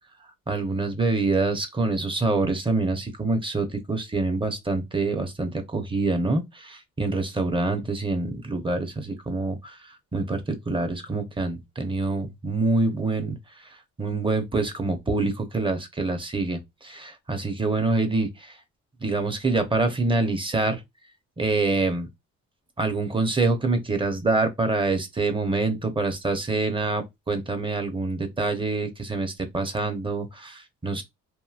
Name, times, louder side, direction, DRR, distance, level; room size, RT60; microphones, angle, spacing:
voice 1, 0.5-9.7 10.1-13.4 14.0-18.3 19.0-20.8 21.4-22.1 22.8-31.0, right 3 dB, 15° right, 0.8 m, -26 dB
3.0 x 2.6 x 2.4 m
cardioid pair, 90°, 30 cm